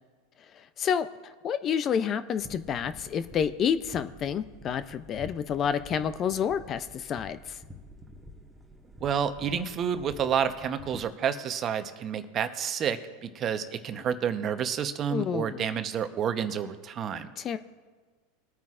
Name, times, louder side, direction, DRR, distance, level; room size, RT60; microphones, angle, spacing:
voice 1, 1.4-7.6 15.1-15.7 17.4-17.6, left 8 dB, 35° left, 12 dB, 0.5 m, -29 dB
sound 1, 2.4-11.1, left 1 dB, 10° right, 1.4 m, -48 dB
voice 2, 9.0-17.3, right 8 dB, 35° right, 9 dB, 0.9 m, -29 dB
21.5 x 9.1 x 2.5 m, 1.4 s
hypercardioid pair, 110°, 0 cm